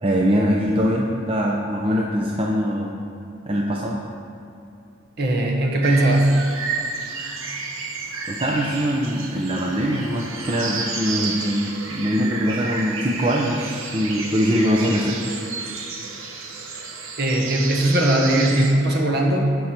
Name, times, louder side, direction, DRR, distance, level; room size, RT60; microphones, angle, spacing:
voice 1, 0.0-2.9 3.5-4.0 8.3-15.2, equal, 25° right, -2 dB, 0.6 m, -22 dB
voice 2, 5.2-6.4 17.2-19.6, right 1 dB, 50° right, 1 dB, 1.3 m, -19 dB
sound 1, 5.8-18.7, right 4 dB, 80° right, 1.1 m, -31 dB
15.5 x 5.5 x 4.4 m, 2.7 s
head